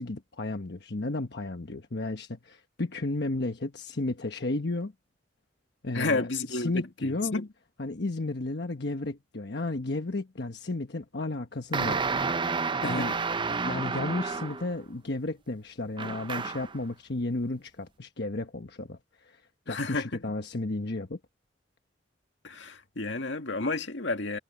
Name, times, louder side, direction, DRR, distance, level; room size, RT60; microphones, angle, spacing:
voice 1, 0.0-4.9 5.8-7.4 7.8-12.0 12.8-13.2 13.6-19.4 19.7-21.2, left 2 dB, 65° left, 1.2 m, -33 dB
voice 2, 5.9-6.7 7.0-7.5 12.8-13.1 19.7-20.1 22.4-24.4, left 3 dB, 85° left, 1.9 m, -31 dB
sound 1, 11.7-14.8 16.0-16.8, right 4 dB, 25° right, 0.6 m, -30 dB
head